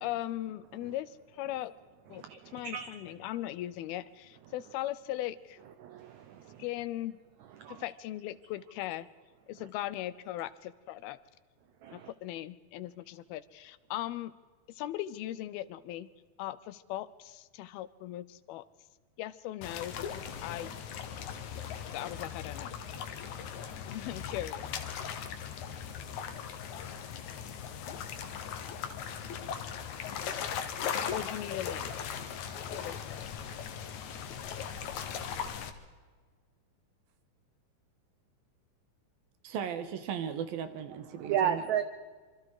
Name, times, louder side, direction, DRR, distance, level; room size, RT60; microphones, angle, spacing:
voice 1, 0.0-1.7 2.1-5.6 6.6-7.2 7.7-9.1 9.5-11.2 11.9-14.3 14.7-16.1 16.4-18.6 19.2-20.7 21.9-22.7 23.0-23.2 23.8-24.7 31.1-31.9 32.7-33.3, left 14 dB, 80° left, 17 dB, 2.6 m, -39 dB
voice 2, 2.1-2.9 5.8-6.6 7.6-7.8 11.8-12.1 41.1-41.8, right 9 dB, 85° right, 11 dB, 1.6 m, -33 dB
sound 1, 19.6-35.7, left 8 dB, 60° left, 2.3 m, -39 dB
voice 3, 39.4-41.7, right 8 dB, 70° right, 10 dB, 3.1 m, -37 dB
26.5 x 25.0 x 4.9 m, 1.5 s
omnidirectional pair, 4.5 m